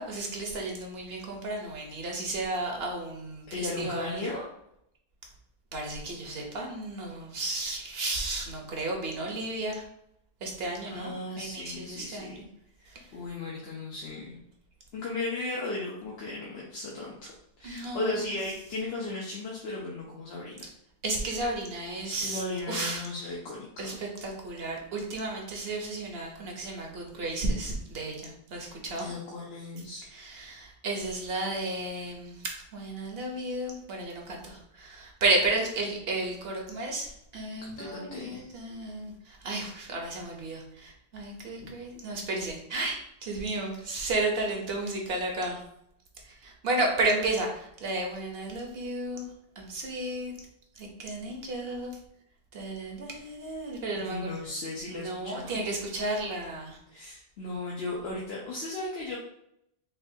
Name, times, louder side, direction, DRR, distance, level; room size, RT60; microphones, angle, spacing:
voice 1, 0.0-4.2 5.7-9.8 10.4-12.4 17.6-18.3 21.0-22.4 22.7-23.0 23.8-29.1 30.1-37.1 37.3-45.6 46.4-49.3 49.6-50.3 50.8-51.9 52.5-54.3 54.9-56.8, right 2 dB, 70° right, 1 dB, 1.1 m, -33 dB
voice 2, 3.5-4.4 10.8-12.5 12.8-14.4 14.9-17.3 17.6-20.6 22.0-24.0 29.0-30.0 37.8-38.5 41.6-41.7 54.1-55.6 56.9-59.2, left 2 dB, 80° left, -5 dB, 1.0 m, -36 dB
5.8 x 2.3 x 2.7 m, 0.76 s
omnidirectional pair, 1.0 m